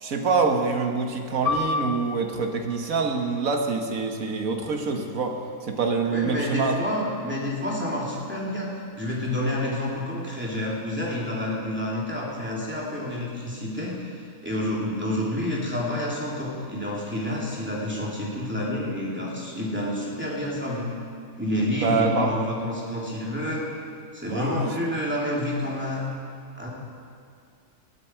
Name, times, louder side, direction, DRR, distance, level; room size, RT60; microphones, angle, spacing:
voice 1, 0.0-5.3 5.6-6.7 21.8-22.3 24.3-24.7, right 4 dB, 70° right, 3 dB, 1.7 m, -25 dB
Piano, 1.4-6.5 6.8-7.0 7.8-8.1, left 3 dB, 15° left, 1.2 m, -33 dB
voice 2, 6.1-20.9 21.4-23.7 24.1-26.2 26.6-26.7, left 1 dB, 5° right, -5 dB, 2.9 m, -29 dB
19.0 x 12.5 x 4.5 m, 2.3 s
omnidirectional pair, 1.5 m